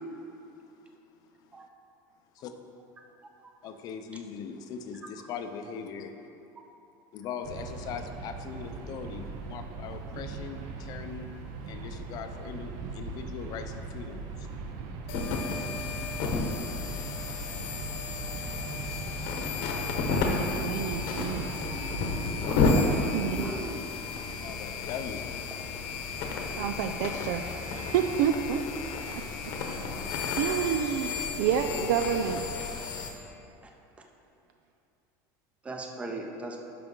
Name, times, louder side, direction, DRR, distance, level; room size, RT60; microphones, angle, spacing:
voice 1, 3.6-6.3 7.1-11.3 11.7-14.5 18.0-18.1 24.4-25.3, left 6 dB, 45° left, 7 dB, 0.6 m, -40 dB
sound 1, 7.4-22.4, right 3 dB, 55° right, 0.7 m, -40 dB
sound 2, 15.1-33.1, left 4 dB, 60° left, 1.1 m, -32 dB
voice 2, 20.1-21.5 23.1-23.5 26.6-27.5 27.7-28.6 29.1-29.5 30.3-32.5, right 8 dB, 80° right, 6 dB, 0.4 m, -29 dB
voice 3, 20.6-20.9 22.5-22.6 23.4-23.8 31.7-31.9 35.6-36.6, right 2 dB, 15° right, 2 dB, 0.7 m, -38 dB
10.5 x 5.9 x 3.8 m, 2.7 s
cardioid pair, 155°, 9 cm